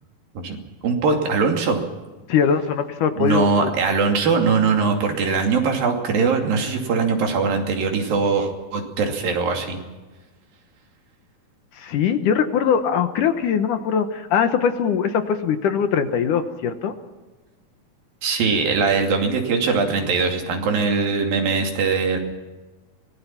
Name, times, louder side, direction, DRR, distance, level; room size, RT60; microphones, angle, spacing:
voice 1, 0.4-1.8 3.2-9.8 18.2-22.2, right 4 dB, 75° right, 3 dB, 4.4 m, -21 dB
voice 2, 2.3-3.7 11.7-16.9, left 7 dB, 70° left, 8 dB, 2.4 m, -21 dB
24.5 x 19.5 x 5.9 m, 1.2 s
omnidirectional pair, 4.2 m